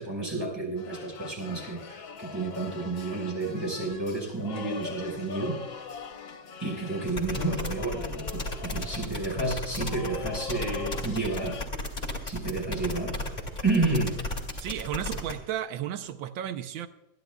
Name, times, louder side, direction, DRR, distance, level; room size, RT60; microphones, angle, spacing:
voice 1, 0.0-5.6 6.6-11.6 12.2-13.2 13.6-14.2, right 3 dB, 10° right, 4.9 m, -30 dB
sound 1, 0.8-11.7, left 5 dB, 75° left, 1.8 m, -42 dB
sound 2, 7.1-15.3, left 2 dB, 25° left, 2.2 m, -34 dB
voice 2, 14.6-16.9, right 11 dB, 90° right, 1.4 m, -33 dB
26.5 x 11.0 x 2.3 m
omnidirectional pair, 2.1 m